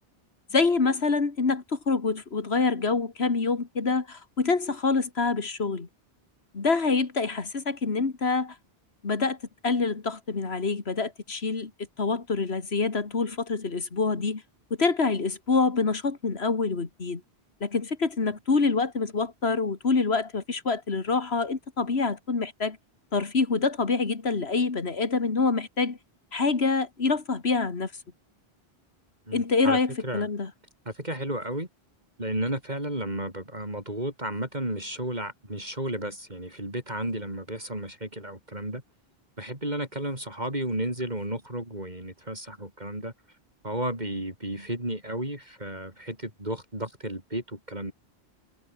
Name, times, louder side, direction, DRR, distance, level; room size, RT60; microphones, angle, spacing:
voice 1, 0.5-5.9 6.5-8.6 9.0-9.4 9.6-11.7 12.0-14.4 14.8-17.2 17.6-22.8 23.1-26.0 26.3-27.9 29.3-30.5, left 4 dB, 80° left, 2.4 m, -26 dB
voice 2, 29.3-30.3 30.9-31.7 32.2-38.8 39.4-43.1 43.6-47.9, right 1 dB, 45° right, 6.2 m, -33 dB
omnidirectional pair, 1.1 m